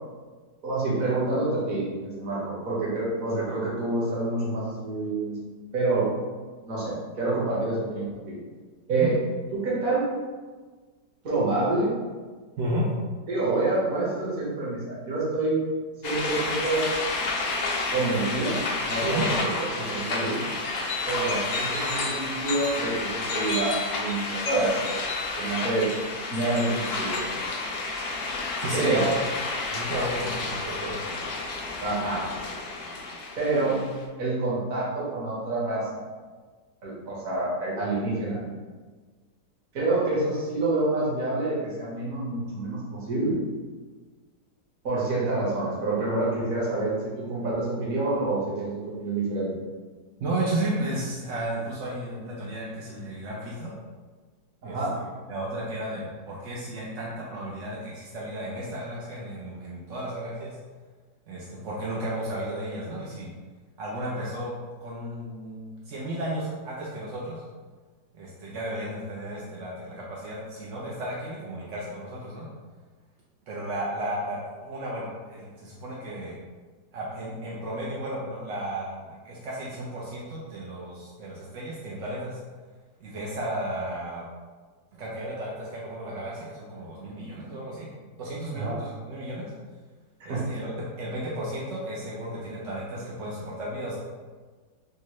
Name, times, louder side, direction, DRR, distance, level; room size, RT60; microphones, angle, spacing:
voice 1, 0.6-5.5 5.7-6.1 6.7-8.4 8.9-9.1 9.5-10.1 11.2-11.9 13.3-15.6 16.0-16.8 17.9-18.6 18.9-20.4 21.1-25.0 25.3-25.9 26.3-27.4 28.7-29.1 31.8-32.3 33.4-33.8 34.2-36.0 36.8-38.4 39.7-43.4 44.8-49.5 54.6-55.0 88.5-88.8 90.2-90.5, right 2 dB, 55° right, -7 dB, 1.4 m, -27 dB
voice 2, 12.6-12.9 19.0-19.3 28.6-29.1 29.7-31.0 50.2-53.7 54.6-60.6 61.3-63.3 63.8-64.5 64.8-67.4 68.1-72.5 73.5-76.4 76.9-82.4 83.0-84.2 84.9-87.9 88.2-89.5 90.2-94.0, right 1 dB, 70° right, -5 dB, 0.7 m, -33 dB
sound 1, 16.0-34.0, left 3 dB, 75° left, 0.7 m, -30 dB
4.5 x 2.1 x 3.0 m, 1.4 s
omnidirectional pair, 1.9 m